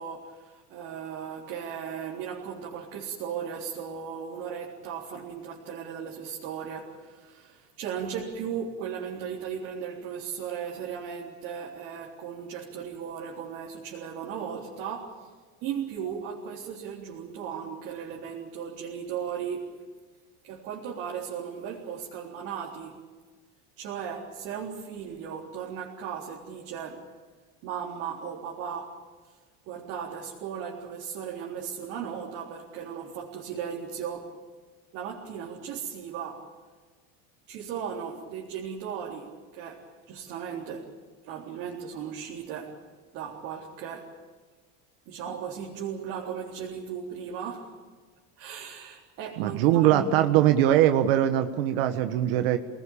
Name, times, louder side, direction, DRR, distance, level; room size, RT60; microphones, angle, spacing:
voice 1, 0.0-15.3 15.6-19.7 20.4-23.0 23.8-27.0 27.6-29.0 29.7-34.3 34.9-36.5 37.5-40.9 41.2-42.8 43.1-44.1 45.1-47.7 48.4-50.2, right 7 dB, 50° right, -3 dB, 3.8 m, -36 dB
voice 2, 49.4-52.6, right 12 dB, 85° right, 8 dB, 1.5 m, -22 dB
26.0 x 19.5 x 8.8 m, 1.5 s
cardioid pair, 165°, 29 cm